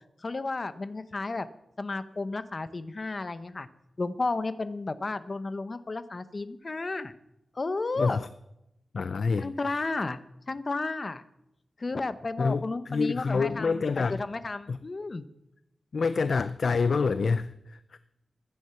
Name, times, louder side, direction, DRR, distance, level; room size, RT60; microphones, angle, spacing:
voice 1, 0.2-1.5 1.8-3.7 4.0-7.1 7.5-8.2 9.4-10.2 10.5-11.2 11.8-15.3, left 3 dB, 35° left, 13 dB, 0.8 m, -32 dB
voice 2, 8.0-8.3 8.9-9.5 12.4-14.2 14.7-14.8 15.9-18.0, left 4 dB, 55° left, 14 dB, 0.5 m, -27 dB
15.5 x 11.0 x 5.8 m, 0.84 s
wide cardioid pair, 140°, 0 cm